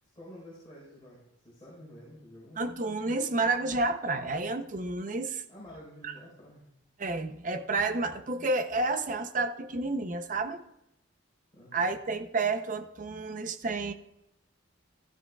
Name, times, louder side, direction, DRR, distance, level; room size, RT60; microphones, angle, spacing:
voice 1, 0.0-2.6 5.5-6.7 11.5-11.9, equal, 25° left, -6 dB, 4.0 m, -50 dB
voice 2, 2.6-5.4 6.0-6.1 7.0-10.6 11.7-13.9, right 3 dB, 40° right, 9 dB, 0.6 m, -30 dB
16.0 x 13.0 x 2.3 m, 0.84 s
head